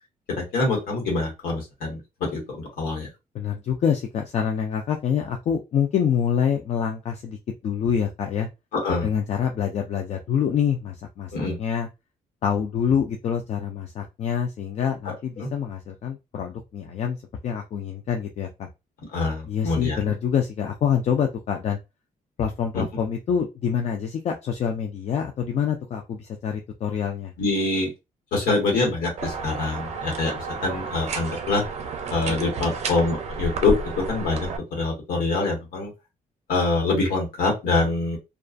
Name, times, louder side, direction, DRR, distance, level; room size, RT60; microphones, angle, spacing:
voice 1, 0.3-3.1 8.7-9.1 11.3-11.6 15.4-15.5 19.1-20.0 22.7-22.8 27.4-27.9 28.3-31.6 32.1-35.9 36.5-38.2, left 3 dB, 85° left, 0 dB, 1.2 m, -25 dB
voice 2, 3.3-7.4 7.6-8.5 9.0-11.3 11.6-11.9 12.4-17.2 17.4-18.7 19.5-21.8 22.4-27.3, left 8 dB, 50° left, 3 dB, 0.4 m, -26 dB
sound 1, 29.2-34.6, right 4 dB, 50° right, 0.5 m, -31 dB
2.4 x 2.3 x 2.4 m, 0.24 s
cardioid pair, 125°, 15 cm